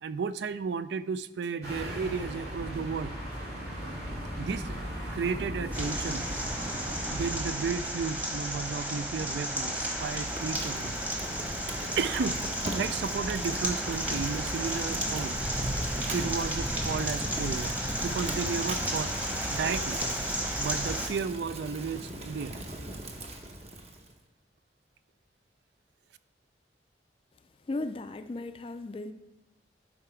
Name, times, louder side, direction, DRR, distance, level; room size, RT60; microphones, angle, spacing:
voice 1, 0.0-3.2 4.4-4.8 5.1-6.3 7.1-10.9 11.9-12.4 12.7-15.4 16.1-17.8 18.0-19.2 19.5-20.0 20.6-22.6, right 5 dB, 70° right, 14 dB, 0.4 m, -33 dB
sound 1, 1.6-7.4, equal, 55° right, 3.0 m, -37 dB
Overflowing Gutters, 5.7-21.1, equal, 10° right, 1.0 m, -33 dB
Fire, 9.7-24.1, right 1 dB, 35° right, 0.9 m, -40 dB
voice 2, 27.7-29.1, left 2 dB, 30° left, 11 dB, 0.3 m, -36 dB
11.5 x 4.8 x 4.4 m, 1.0 s
head